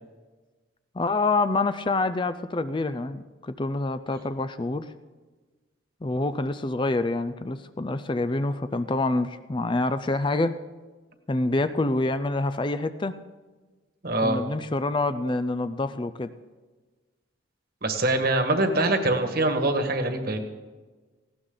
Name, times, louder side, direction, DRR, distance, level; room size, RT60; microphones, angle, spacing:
voice 1, 0.9-4.9 6.0-10.6 11.3-13.2 14.2-16.3, left 2 dB, 25° left, 11 dB, 0.4 m, -27 dB
voice 2, 14.0-14.4 17.8-20.4, right 2 dB, 50° right, 6 dB, 1.6 m, -24 dB
18.5 x 16.0 x 3.9 m, 1.3 s
head